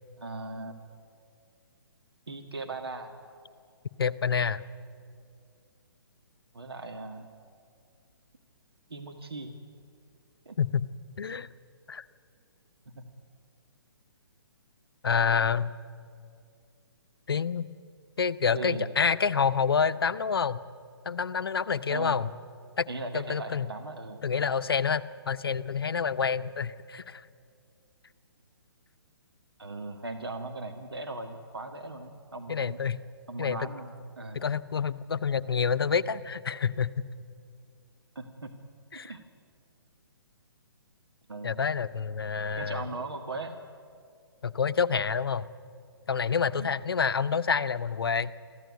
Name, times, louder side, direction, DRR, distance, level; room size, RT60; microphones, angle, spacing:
voice 1, 0.2-0.8 2.3-3.1 6.5-7.3 8.9-9.6 10.5-10.6 12.9-13.0 18.5-18.9 21.9-22.2 22.9-24.2 29.6-32.8 33.3-34.4 38.2-38.5 38.9-39.2 41.3-41.6 42.6-43.6 46.6-46.7, right 2 dB, 70° right, 4 dB, 1.7 m, -38 dB
voice 2, 4.0-4.6 10.6-10.9 11.2-11.5 11.9-12.0 15.0-15.7 17.3-17.7 18.2-20.6 21.1-22.3 22.8-22.9 23.1-23.7 24.2-27.2 32.5-33.0 33.4-33.7 34.3-36.9 38.9-39.1 41.4-42.8 44.4-45.5 46.1-48.3, left 6 dB, 65° left, 13 dB, 0.8 m, -28 dB
23.0 x 15.0 x 9.4 m, 2.3 s
figure-of-eight pair, 130°, 13 cm